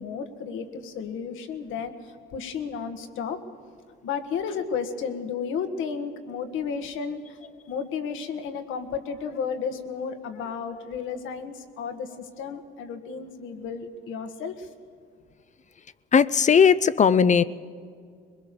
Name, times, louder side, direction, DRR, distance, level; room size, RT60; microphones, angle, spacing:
voice 1, 0.0-3.4 4.0-14.7, left 6 dB, 90° left, 7 dB, 1.7 m, -33 dB
voice 2, 16.1-17.4, left 6 dB, 35° left, 16 dB, 0.6 m, -18 dB
22.0 x 21.0 x 6.9 m, 2.2 s
cardioid pair, 90°, 20 cm